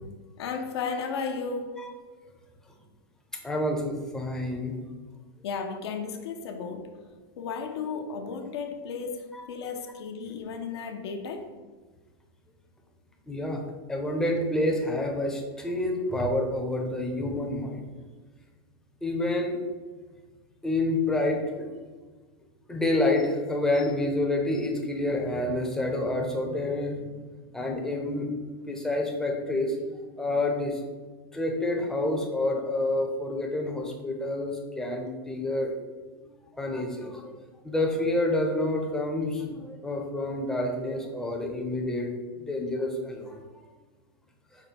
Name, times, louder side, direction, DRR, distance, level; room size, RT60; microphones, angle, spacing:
voice 1, 0.4-1.9 5.4-6.9 7.4-11.5, left 5 dB, 80° left, 4 dB, 0.6 m, -34 dB
voice 2, 3.4-4.8 9.3-9.4 13.3-13.6 13.9-17.8 19.0-19.6 20.6-21.7 22.7-27.1 27.5-28.3 28.7-29.8 30.2-30.8 31.3-35.7 36.2-37.3 37.6-42.1 42.4-43.4, left 1 dB, 5° left, 1 dB, 0.6 m, -28 dB
5.1 x 2.2 x 4.2 m, 1.4 s
supercardioid pair, 145°, 13 cm